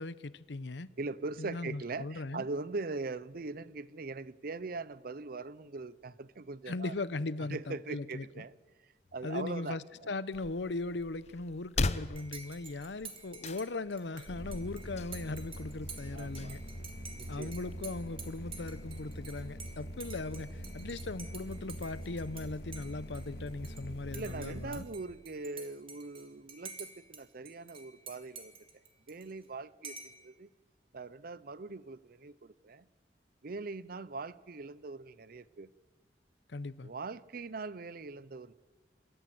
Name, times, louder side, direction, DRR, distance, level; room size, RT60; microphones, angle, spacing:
voice 1, 0.0-0.9 1.4-2.4 6.7-8.3 9.2-16.6 17.3-24.9 36.5-36.9, left 3 dB, 80° left, 0.8 m, -39 dB
voice 2, 1.0-6.9 7.5-8.6 9.1-10.1 16.1-16.6 17.2-17.6 24.1-28.5 29.1-30.5 30.9-32.9 33.4-35.7 36.8-38.5, right 3 dB, 55° right, 0.7 m, -41 dB
sound 1, 10.3-17.8, left 3 dB, 40° left, 0.8 m, -40 dB
Dishes pots and pans / Cutlery silverware / Chink clink, 12.2-22.5 22.7-23.8 24.1-27.2 27.5-29.5 29.8-30.2, right 5 dB, 30° right, 2.8 m, -49 dB
sound 2, 14.3-24.8, equal, 60° left, 2.2 m, -44 dB
26.5 x 13.5 x 7.8 m
head